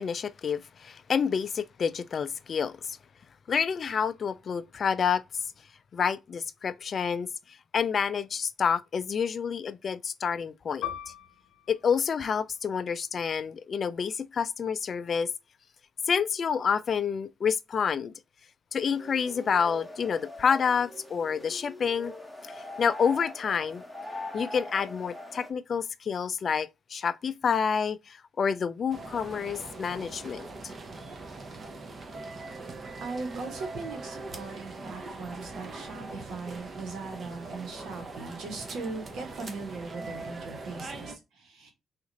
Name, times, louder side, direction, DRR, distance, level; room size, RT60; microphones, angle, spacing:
voice 1, 0.0-2.8 3.5-5.2 5.9-7.3 7.7-10.8 11.7-15.3 16.1-18.1 18.7-22.1 22.5-23.8 24.3-30.4, left 6 dB, 50° left, 0.3 m, -28 dB
Piano, 10.8-15.9 16.2-16.4 17.1-17.5, left 11 dB, 80° left, 0.8 m, -43 dB
sound 1, 18.9-25.5, left 1 dB, ahead, 0.8 m, -42 dB
sound 2, 28.9-41.1, right 3 dB, 40° right, 0.7 m, -41 dB
voice 2, 33.0-41.7, right 4 dB, 75° right, 1.3 m, -39 dB
2.9 x 2.5 x 3.8 m
cardioid pair, 90°, 0 cm